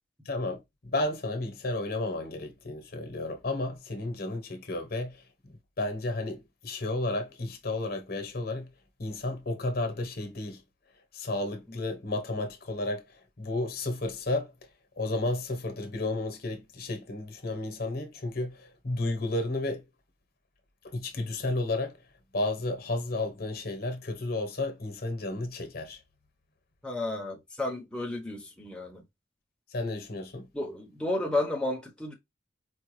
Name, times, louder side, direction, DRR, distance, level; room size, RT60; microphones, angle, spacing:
voice 1, 0.2-5.2 5.8-8.7 9.0-10.6 11.1-13.0 13.4-14.5 15.0-19.8 20.8-21.9 22.3-26.0 29.7-30.5, left 2 dB, 55° left, 0.9 m, -32 dB
voice 2, 26.8-29.0 30.5-32.1, left 2 dB, 5° left, 0.7 m, -32 dB
4.6 x 2.2 x 3.1 m
head